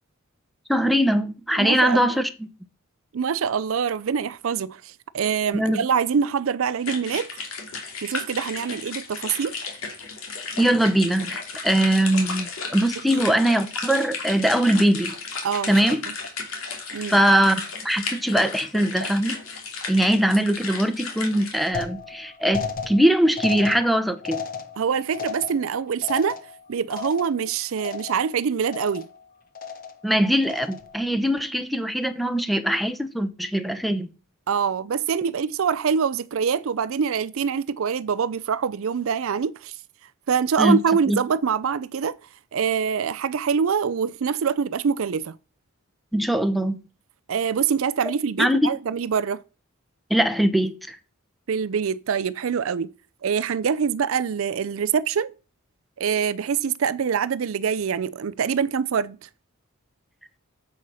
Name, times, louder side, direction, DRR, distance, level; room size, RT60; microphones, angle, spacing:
voice 1, 0.7-2.3 5.5-5.8 10.6-15.1 15.7-16.0 17.1-19.4 19.9-24.4 30.0-34.1 40.6-40.8 41.1-41.2 46.1-46.8 48.4-48.7 50.1-51.0, right 1 dB, ahead, 0.9 m, -21 dB
voice 2, 1.5-2.2 3.1-7.3 8.0-9.5 13.1-13.2 15.4-16.0 16.9-17.2 24.8-26.4 26.7-29.1 34.5-39.8 40.3-42.2 42.5-45.4 47.3-49.4 51.5-52.9 53.2-55.3 56.0-59.3, right 6 dB, 70° right, 0.4 m, -25 dB
sound 1, 6.8-21.7, left 4 dB, 70° left, 2.7 m, -34 dB
sound 2, 21.7-27.5 27.8-28.4 28.7-29.2 29.5-30.1 30.4-31.0, left 6 dB, 45° left, 1.1 m, -35 dB
7.7 x 6.3 x 5.6 m
head